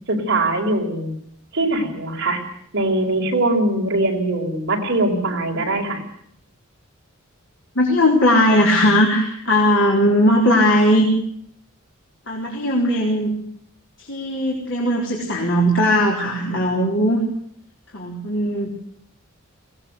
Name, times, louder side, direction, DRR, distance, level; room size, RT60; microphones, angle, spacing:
voice 1, 0.1-1.1 1.5-2.4 2.7-6.0, right 2 dB, 55° right, 1 dB, 5.1 m, -21 dB
voice 2, 7.8-11.1 12.3-13.3 14.0-17.2 17.9-18.7, equal, 60° left, -2 dB, 4.0 m, -18 dB
22.0 x 18.0 x 8.1 m, 0.69 s
head